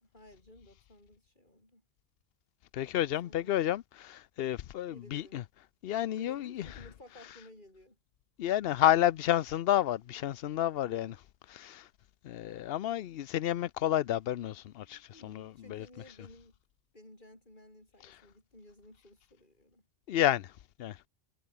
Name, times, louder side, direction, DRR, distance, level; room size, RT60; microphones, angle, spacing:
voice 1, 0.0-1.8 3.2-3.6 4.9-5.4 6.1-8.0 8.4-8.5 10.1-10.3 10.7-11.2 14.8-16.5 16.9-19.9, left 1 dB, 50° left, 7.1 m, -56 dB
voice 2, 2.7-5.4 5.8-6.7 8.4-11.2 11.5-11.9 12.2-15.9 20.1-20.5 20.8-21.0, left 12 dB, 70° left, 0.8 m, -30 dB
omnidirectional pair, 1.1 m